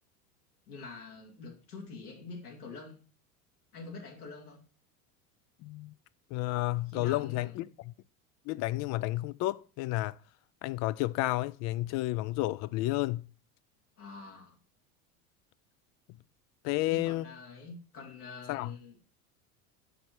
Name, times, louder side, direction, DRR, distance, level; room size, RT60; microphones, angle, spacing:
voice 1, 0.7-3.0 3.7-4.6 6.9-7.7 14.0-14.6 16.9-19.0, left 4 dB, 90° left, 2.4 m, -46 dB
voice 2, 5.6-5.9 6.3-7.9 8.5-10.2 10.6-13.2 16.6-17.2 18.5-18.7, left 18 dB, 40° left, 0.4 m, -31 dB
6.6 x 5.3 x 4.4 m
hypercardioid pair, 90°, 44 cm